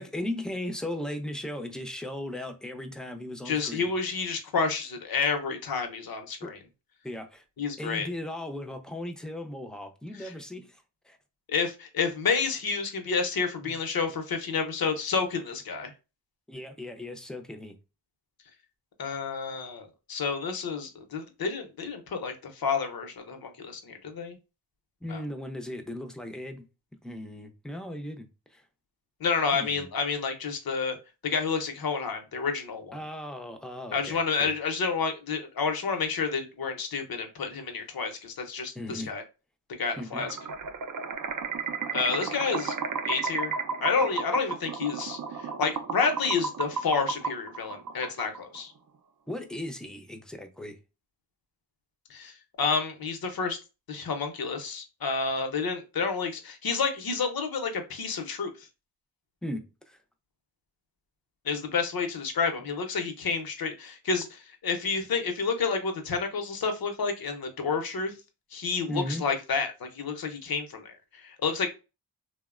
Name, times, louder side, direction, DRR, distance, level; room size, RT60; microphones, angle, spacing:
voice 1, 0.0-3.9 6.4-6.6 7.0-7.4 7.8-11.2 13.6-13.8 16.5-17.8 25.0-26.6 27.0-28.6 29.5-29.9 32.9-34.5 38.7-39.1 40.0-40.3 49.3-50.8 59.4-60.0 68.9-69.2, left 1 dB, ahead, 0.5 m, -37 dB
voice 2, 3.4-6.6 7.6-8.1 10.2-10.3 11.5-15.9 19.0-24.4 25.1-25.2 29.2-31.0 31.2-33.0 33.9-39.2 39.8-40.3 41.9-42.7 43.0-43.5 43.8-48.7 52.1-53.6 53.9-58.5 61.4-68.1 68.5-71.7, left 5 dB, 55° left, 0.8 m, -30 dB
sound 1, 40.1-48.6, right 5 dB, 45° right, 0.6 m, -33 dB
2.8 x 2.1 x 2.4 m
cardioid pair, 45°, 43 cm